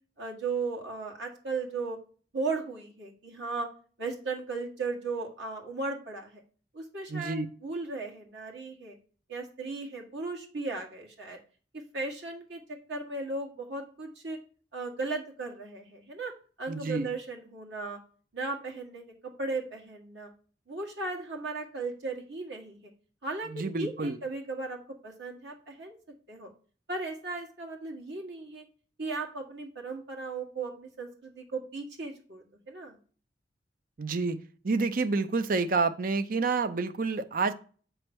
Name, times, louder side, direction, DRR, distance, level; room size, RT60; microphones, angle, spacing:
voice 1, 0.2-2.0 2.3-3.7 4.0-6.4 6.7-9.0 9.3-11.4 11.9-14.4 14.7-16.3 16.6-18.0 18.3-20.3 20.7-22.9 23.2-26.0 26.3-26.5 26.9-28.6 29.0-33.0, right 3 dB, 85° right, 0 dB, 1.8 m, -36 dB
voice 2, 7.1-7.5 16.7-17.1 23.5-24.2 34.0-34.4 34.6-37.5, right 4 dB, 50° right, 10 dB, 0.5 m, -28 dB
7.6 x 3.2 x 6.1 m, 0.40 s
head